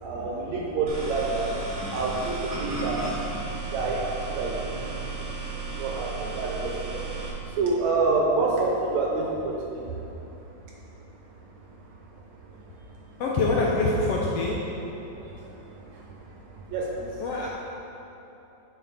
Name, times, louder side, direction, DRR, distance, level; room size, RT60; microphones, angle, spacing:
voice 1, 0.0-1.5 1.9-3.2 3.7-5.2 5.5-7.2 7.5-9.9 15.1-16.0 16.7-17.2, right 3 dB, 70° right, -2 dB, 2.0 m, -28 dB
sound 1, 0.9-7.3, right 4 dB, 45° right, 1.2 m, -34 dB
voice 2, 13.2-14.6 17.2-17.5, left 3 dB, 80° left, -3 dB, 1.4 m, -24 dB
9.4 x 5.5 x 4.0 m, 3.0 s
omnidirectional pair, 3.6 m